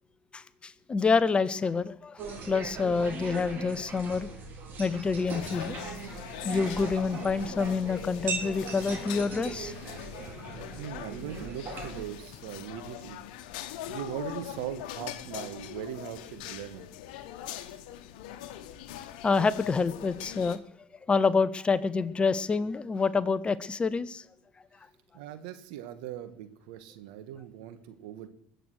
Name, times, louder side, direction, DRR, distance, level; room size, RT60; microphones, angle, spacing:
voice 1, 0.3-4.3 4.8-5.8 6.5-9.7 19.2-20.6 21.1-24.2, left 4 dB, 25° left, 17 dB, 0.8 m, -27 dB
sound 1, 2.2-12.0, right 4 dB, 45° right, 4.9 m, -39 dB
sound 2, 5.3-20.6, left 12 dB, 75° left, 1.2 m, -42 dB
voice 2, 10.8-13.2 13.6-16.9 25.1-28.3, right 11 dB, 75° right, 10 dB, 1.7 m, -40 dB
22.0 x 7.9 x 6.4 m, 0.68 s
hypercardioid pair, 85°, 5 cm